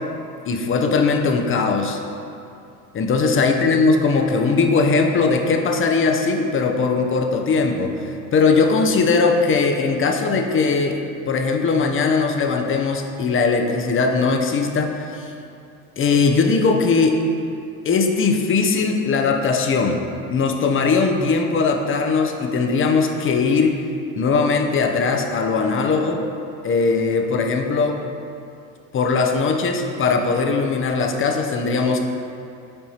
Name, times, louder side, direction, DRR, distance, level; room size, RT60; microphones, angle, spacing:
voice 1, 0.5-2.0 2.9-11.0 11.3-15.3 16.0-17.2 17.8-23.8 24.2-26.2 26.6-28.0 28.9-32.0, left 4 dB, 30° left, 4 dB, 0.6 m, -19 dB
8.6 x 4.5 x 2.8 m, 2.6 s
supercardioid pair, 95°, 42 cm